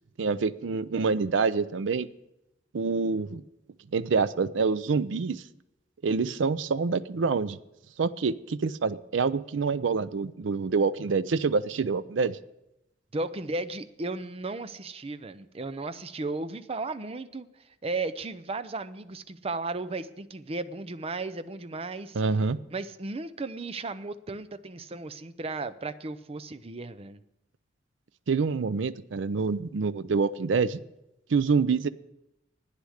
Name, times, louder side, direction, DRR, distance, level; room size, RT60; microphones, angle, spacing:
voice 1, 0.2-2.1 2.7-3.4 3.9-5.4 6.0-7.6 8.0-12.4 22.1-22.6 28.3-30.8 31.3-31.9, right 4 dB, 80° right, 15 dB, 0.5 m, -26 dB
voice 2, 13.1-17.5 17.8-22.2 22.7-27.2, right 3 dB, 30° right, 13 dB, 0.6 m, -35 dB
11.5 x 9.8 x 6.4 m, 0.87 s
head